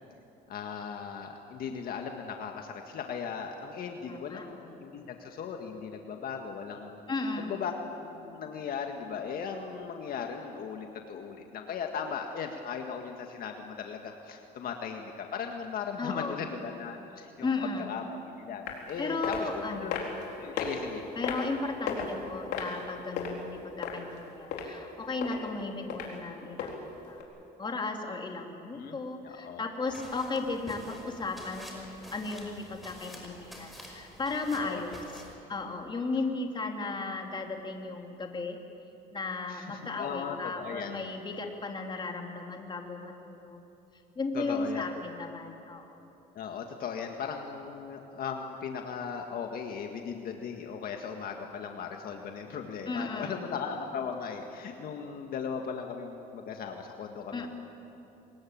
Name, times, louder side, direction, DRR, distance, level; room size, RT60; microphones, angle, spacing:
voice 1, 0.5-7.0 7.4-7.7 8.0-17.5 17.8-18.0 18.4-20.1 20.4-21.0 28.7-29.0 29.2-29.7 34.5-34.8 35.2-35.3 39.5-41.0 44.3-44.9 46.3-57.5, left 6 dB, 60° left, 3 dB, 1.8 m, -38 dB
voice 2, 4.1-4.5 7.1-7.5 16.0-16.4 17.4-17.9 19.0-20.0 21.1-27.2 27.6-35.2 35.5-38.6 39.1-43.6 44.1-46.0 52.9-53.4 57.3-57.5, left 3 dB, 25° left, 2 dB, 3.0 m, -35 dB
sound 1, 18.7-18.9 19.2-19.4 19.9-20.2 20.6-20.7 21.2-21.5 21.9-22.1 22.5-23.3 23.8-24.2 24.5-24.6 25.2-25.4 25.9-26.1 26.6-26.7 27.2-27.3, left 8 dB, 80° left, 4.2 m, -33 dB
sound 2, 29.9-35.3, left 1 dB, ahead, 5.7 m, -48 dB
25.0 x 21.0 x 8.8 m, 2.9 s
cardioid pair, 110°, 17 cm